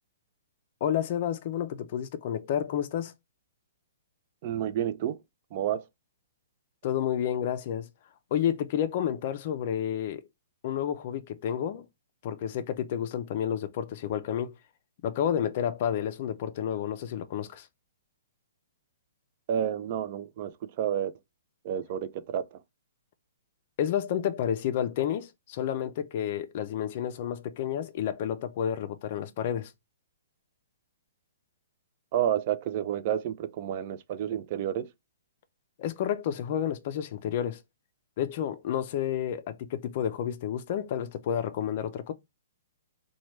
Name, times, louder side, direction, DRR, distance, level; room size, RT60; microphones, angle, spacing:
voice 1, 0.8-3.1 6.8-7.9 8.3-10.2 10.6-11.9 12.2-14.5 15.0-17.7 23.8-29.7 35.8-37.6 38.2-42.1, left 9 dB, 45° left, 0.4 m, -30 dB
voice 2, 4.4-5.2 5.5-5.9 19.5-21.1 21.6-22.6 32.1-34.9, right 10 dB, 40° right, 0.3 m, -30 dB
2.9 x 2.2 x 3.1 m
hypercardioid pair, 150°, 0 cm